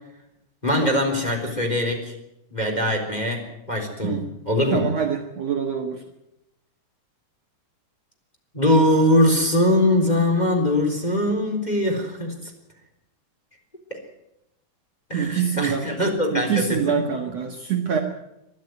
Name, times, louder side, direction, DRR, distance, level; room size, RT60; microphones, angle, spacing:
voice 1, 0.6-2.1 2.5-4.8 8.5-12.3 13.9-14.0 15.1-17.0, left 1 dB, 10° left, 2 dB, 3.6 m, -22 dB
voice 2, 4.7-6.0 15.1-15.9 16.3-18.0, right 7 dB, 55° right, 3 dB, 2.4 m, -25 dB
23.0 x 12.5 x 9.3 m, 0.86 s
omnidirectional pair, 4.0 m